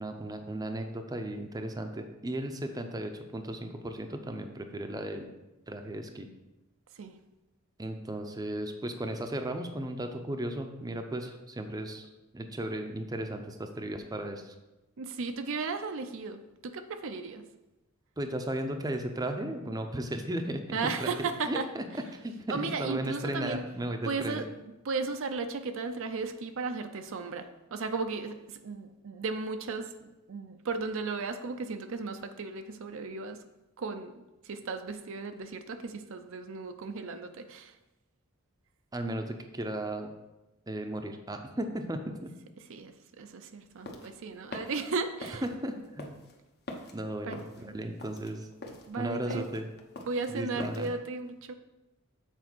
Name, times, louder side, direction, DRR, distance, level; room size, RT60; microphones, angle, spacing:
voice 1, 0.0-5.3 5.7-6.3 7.8-14.5 18.2-21.1 21.5-21.8 22.1-24.4 38.9-40.1 40.7-42.3 45.4-46.1 46.9-48.5 49.0-49.7 50.3-50.9, right 1 dB, 15° right, 5 dB, 0.6 m, -35 dB
voice 2, 15.0-17.5 20.7-21.7 22.5-23.7 24.0-24.5 24.8-33.4 33.8-34.2 34.4-37.8 42.7-45.4 47.2-47.8 48.9-49.5 50.0-51.5, right 4 dB, 65° right, 7 dB, 0.5 m, -35 dB
sound 1, 43.6-50.9, left 1 dB, 50° left, 1.0 m, -44 dB
7.2 x 4.4 x 6.1 m, 1.0 s
head